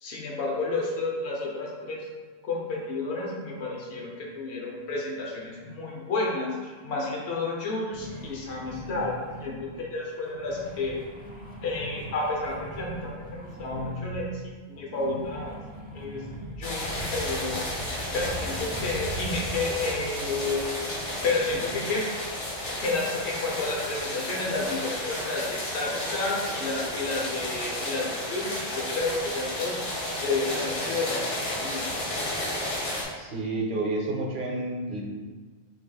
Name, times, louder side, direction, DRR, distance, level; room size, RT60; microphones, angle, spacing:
voice 1, 0.0-2.0 2.4-11.0 11.6-15.6 15.9-16.2 16.6-17.7 18.1-20.6 21.2-22.0 22.8-29.8 30.2-32.0, left 3 dB, 70° left, -2 dB, 1.1 m, -31 dB
sound 1, 7.9-9.8 10.2-14.3 14.7-19.3 19.7-21.8, equal, 10° right, 0.4 m, -42 dB
sound 2, 16.6-33.0, left 1 dB, 85° left, 1.4 m, -32 dB
voice 2, 33.1-35.0, right 2 dB, 50° right, -1 dB, 0.8 m, -30 dB
5.7 x 3.3 x 2.3 m, 1.4 s
omnidirectional pair, 1.2 m